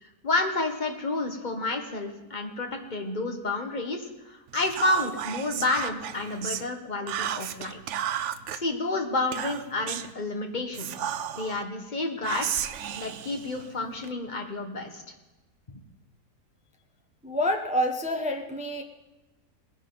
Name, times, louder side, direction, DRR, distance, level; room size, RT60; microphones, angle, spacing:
voice 1, 0.0-7.8 8.5-11.1 11.4-12.6 13.0-15.0, left 2 dB, 30° left, 3 dB, 1.5 m, -30 dB
Whispering, 4.5-6.7 7.1-8.6 9.3-10.1 10.7-11.6 12.2-14.1, right 10 dB, 65° right, 0.8 m, -33 dB
voice 2, 17.2-18.8, equal, 5° right, 4 dB, 0.6 m, -27 dB
20.0 x 10.5 x 4.0 m, 1.0 s
omnidirectional pair, 1.7 m